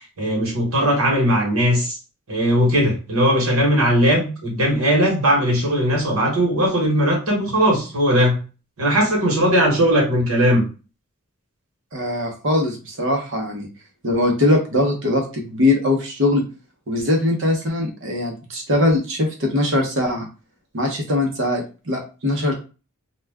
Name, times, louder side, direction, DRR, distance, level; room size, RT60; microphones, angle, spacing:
voice 1, 0.2-2.0 2.3-8.4 8.8-10.6, equal, 75° right, 1.2 m, -18 dB
voice 2, 11.9-13.7 14.0-16.4 16.9-20.3 20.7-22.5, left 1 dB, 60° right, 0.9 m, -21 dB
2.4 x 2.2 x 3.4 m
head